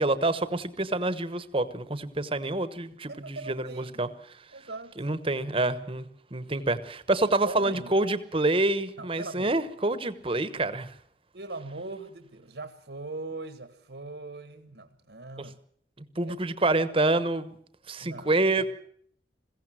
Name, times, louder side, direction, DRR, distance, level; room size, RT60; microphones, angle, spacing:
voice 1, 0.0-4.1 5.0-6.1 6.3-10.9 15.4-15.5 16.2-17.6 17.9-18.7, right 2 dB, 30° right, 14 dB, 1.2 m, -27 dB
voice 2, 3.1-4.0 4.5-4.9 6.5-6.7 7.4-7.9 9.0-9.5 11.3-15.6 16.2-16.4 18.0-18.3, right 2 dB, 75° right, 10 dB, 1.5 m, -40 dB
21.5 x 16.0 x 7.6 m, 0.63 s
head